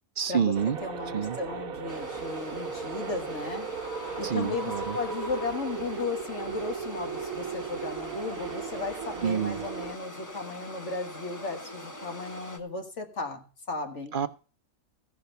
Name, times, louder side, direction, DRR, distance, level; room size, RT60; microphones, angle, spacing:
voice 1, 0.2-0.8 1.1-1.4 4.2-5.0 9.2-9.6 14.1-14.3, right 7 dB, 50° right, 11 dB, 0.7 m, -28 dB
sound 1, 0.5-9.9, right 6 dB, 90° right, 1.5 m, -37 dB
voice 2, 0.8-3.7 4.2-14.1, left 4 dB, 55° left, 5 dB, 2.1 m, -35 dB
sound 2, 1.9-12.6, left 1 dB, 15° left, 0.9 m, -44 dB
sound 3, 3.6-6.3, equal, 35° left, 7.1 m, -42 dB
14.5 x 5.7 x 6.7 m, 0.36 s
omnidirectional pair, 1.4 m